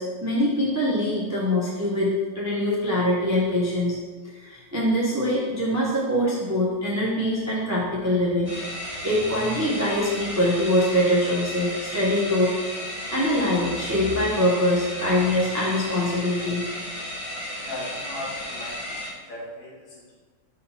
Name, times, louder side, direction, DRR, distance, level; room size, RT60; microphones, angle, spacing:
voice 1, 0.0-4.0 4.2-8.5 8.8-12.5 13.1-16.6, left 1 dB, 20° right, -6 dB, 0.4 m, -23 dB
sound 1, 8.4-19.1, left 1 dB, 15° left, 1.4 m, -34 dB
voice 2, 17.6-20.1, left 2 dB, 40° left, -8 dB, 1.9 m, -38 dB
5.6 x 3.4 x 5.6 m, 1.4 s
omnidirectional pair, 2.4 m